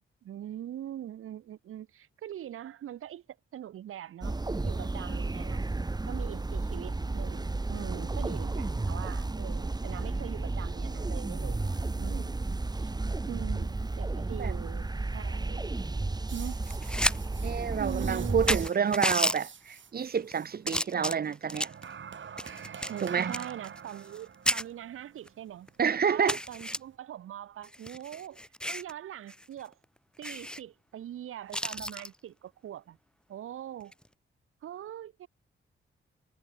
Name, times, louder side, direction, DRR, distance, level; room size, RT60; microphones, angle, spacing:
voice 1, 0.2-3.2 3.5-4.3 4.6-5.6 6.1-12.9 13.3-15.6 16.3-16.6 17.8-18.7 22.9-25.7 26.1-28.4 28.7-29.8 30.2-33.0 33.3-33.9 34.6-35.3, right 11 dB, 85° right, 1.3 m, -42 dB
sound 1, 4.2-18.7, right 2 dB, 20° right, 1.2 m, -33 dB
sound 2, 16.3-20.6 21.5-26.9, right 7 dB, 65° right, 6.2 m, -46 dB
sound 3, 16.7-17.2 17.5-17.6 18.2-18.3 18.5-19.4 20.1-20.3 20.7-21.8 22.4-24.2 24.5-24.6 25.3-25.4 25.7-25.8 26.3-26.8 27.6-28.9 29.3-29.4 29.7-29.8 30.2-30.6 31.5-32.1 33.8-34.1, equal, 5° left, 1.6 m, -32 dB
voice 2, 17.4-21.7 23.0-23.3 25.8-26.4, right 7 dB, 45° right, 0.8 m, -29 dB
cardioid pair, 65°, 21 cm